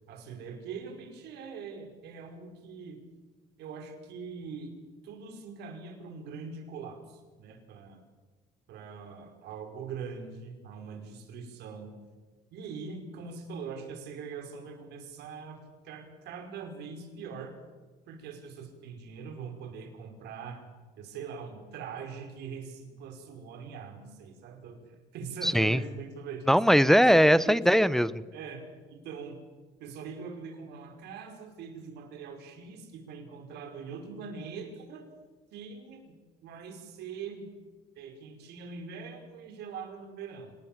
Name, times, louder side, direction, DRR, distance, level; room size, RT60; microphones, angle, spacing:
voice 1, 0.1-3.0 3.6-4.7 5.0-8.0 8.7-12.0 12.5-17.6 18.1-20.6 21.0-26.6 27.1-27.6 28.3-29.4 29.8-35.1 35.5-36.1 36.4-37.5 38.0-40.6, right 5 dB, 80° right, 4 dB, 5.3 m, -42 dB
voice 2, 25.4-25.8 26.5-28.2, equal, ahead, 16 dB, 0.8 m, -21 dB
26.5 x 20.0 x 7.4 m, 1.3 s
cardioid pair, 110°, 17 cm